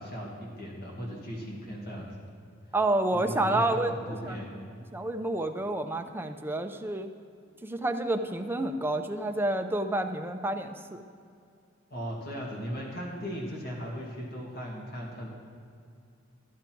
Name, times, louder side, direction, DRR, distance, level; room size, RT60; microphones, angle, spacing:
voice 1, 0.0-2.1 3.1-4.5 11.9-15.3, equal, 55° left, -2 dB, 2.1 m, -37 dB
voice 2, 2.7-4.4 4.9-7.1 7.6-11.0, right 2 dB, 10° right, 6 dB, 0.5 m, -29 dB
13.0 x 8.5 x 4.6 m, 2.4 s
head